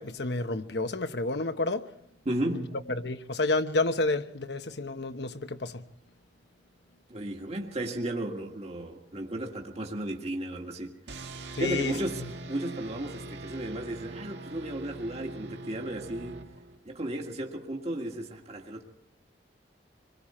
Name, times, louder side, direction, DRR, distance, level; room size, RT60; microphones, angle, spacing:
voice 1, 0.0-1.9 2.5-2.6 3.0-5.8 11.6-11.9, left 2 dB, 65° left, 1.1 m, -30 dB
voice 2, 2.3-2.7 7.1-16.5 16.9-18.8, right 1 dB, 35° right, 1.9 m, -34 dB
sound 1, 11.1-16.9, right 2 dB, 75° right, 1.8 m, -42 dB
27.0 x 22.0 x 4.4 m
head